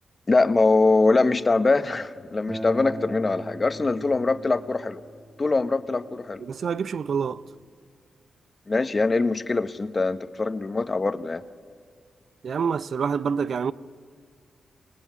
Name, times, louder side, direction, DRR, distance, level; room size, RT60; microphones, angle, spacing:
voice 1, 0.3-5.0 5.4-6.4 8.7-11.4, left 3 dB, 35° left, 1.0 m, -23 dB
Acoustic guitar, 2.5-7.7, equal, 15° right, 1.4 m, -40 dB
voice 2, 6.4-7.4 12.4-13.7, right 6 dB, 65° right, 0.6 m, -27 dB
25.0 x 19.5 x 9.5 m
cardioid pair, 80°, 0 cm